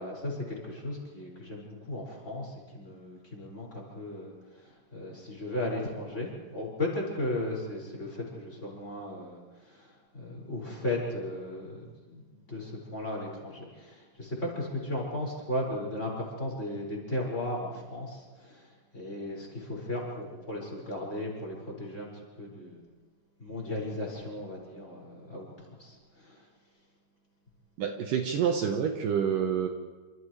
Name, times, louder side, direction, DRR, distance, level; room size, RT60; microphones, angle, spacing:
voice 1, 0.0-22.8 23.4-25.5 25.8-26.4, left 1 dB, 15° left, -2 dB, 6.0 m, -36 dB
voice 2, 27.8-29.7, right 7 dB, 90° right, 3 dB, 1.9 m, -28 dB
28.5 x 28.0 x 3.4 m, 1.3 s
omnidirectional pair, 5.8 m